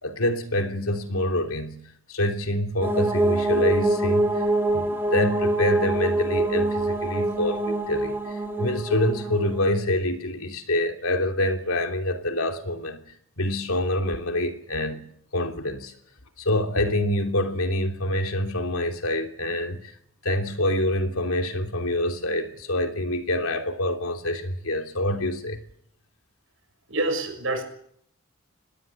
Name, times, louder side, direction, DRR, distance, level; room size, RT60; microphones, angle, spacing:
voice 1, 0.0-1.7 2.1-4.4 4.7-13.0 13.4-15.1 15.3-16.0 16.4-19.9 20.2-25.6, left 1 dB, 80° left, 3.1 m, -26 dB
sound 1, 2.8-9.6, right 2 dB, 10° right, 2.8 m, -24 dB
voice 2, 26.9-27.6, right 2 dB, 65° right, 6.6 m, -26 dB
26.0 x 20.0 x 8.6 m
head